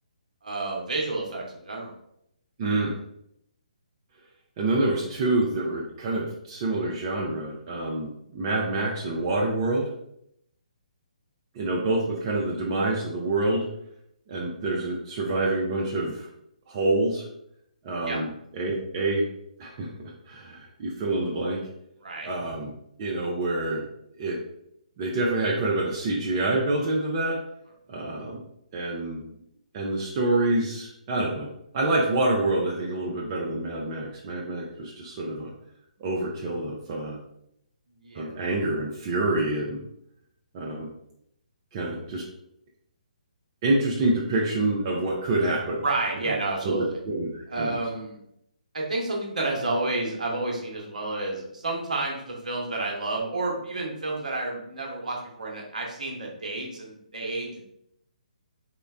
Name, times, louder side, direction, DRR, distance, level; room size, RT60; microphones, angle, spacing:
voice 1, 0.4-1.9 13.4-13.5 18.1-18.2 22.0-22.3 38.0-38.3 45.8-47.0 47.5-48.2 48.7-57.6, right 2 dB, 65° right, -1 dB, 0.8 m, -30 dB
voice 2, 2.6-2.9 4.6-9.9 11.5-13.7 14.3-16.3 16.7-17.3 17.8-19.3 19.6-19.9 20.3-21.6 22.3-22.7 23.0-23.8 24.2-24.4 25.0-27.4 27.9-28.4 28.7-29.2 29.7-31.5 31.7-35.5 36.0-37.2 38.1-39.8 40.5-40.9 41.7-42.2 43.6-45.8 46.2-46.3 46.6-47.8, right 2 dB, 30° right, -2 dB, 0.4 m, -27 dB
3.7 x 2.1 x 2.3 m, 0.76 s
figure-of-eight pair, 140°, 4 cm